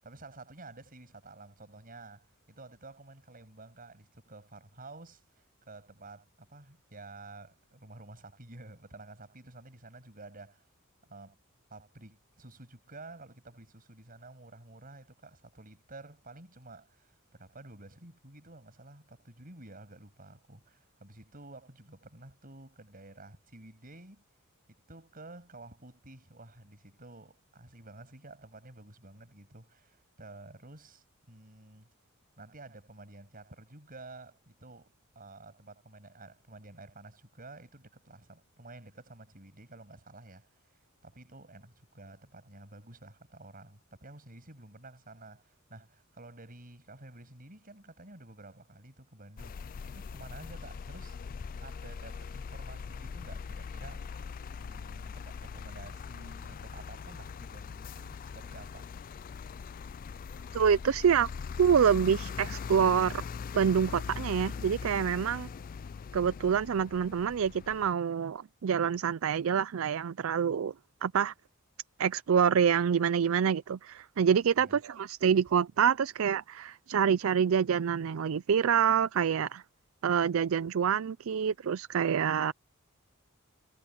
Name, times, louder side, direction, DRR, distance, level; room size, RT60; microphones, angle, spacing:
voice 1, 0.0-10.7 11.0-11.4 11.7-24.2 24.7-31.9 32.4-49.6 49.8-51.2 51.6-54.3 54.6-58.9 74.6-74.8, right 2 dB, 45° right, 7.9 m, -51 dB
sound 1, 49.4-67.9, left 5 dB, 40° left, 0.3 m, -41 dB
voice 2, 60.5-61.3 61.6-63.2 63.5-65.5 66.1-70.7 71.0-71.3 72.0-79.6 80.0-82.5, right 7 dB, 70° right, 0.4 m, -26 dB
head